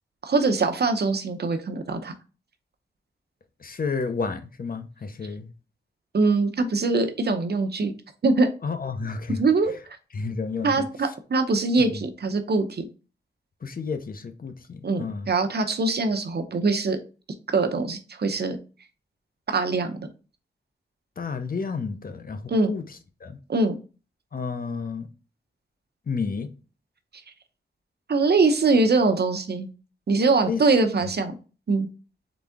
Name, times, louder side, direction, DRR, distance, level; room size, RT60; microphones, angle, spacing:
voice 1, 0.2-2.1 6.1-7.9 8.2-8.5 9.3-9.7 10.6-12.9 14.8-17.0 17.5-18.6 19.5-20.1 22.5-22.7 23.5-23.7 28.1-29.7 30.1-31.3 31.7-31.9, right 3 dB, 60° right, 0.7 m, -23 dB
voice 2, 3.6-5.5 8.6-9.4 10.1-10.9 11.8-12.0 13.6-15.3 21.2-22.8 23.2-23.4 24.3-25.1 26.1-26.5 30.5-30.6 31.0-31.1, left 5 dB, 50° left, 0.6 m, -31 dB
3.9 x 3.6 x 3.5 m
wide cardioid pair, 115°, 19 cm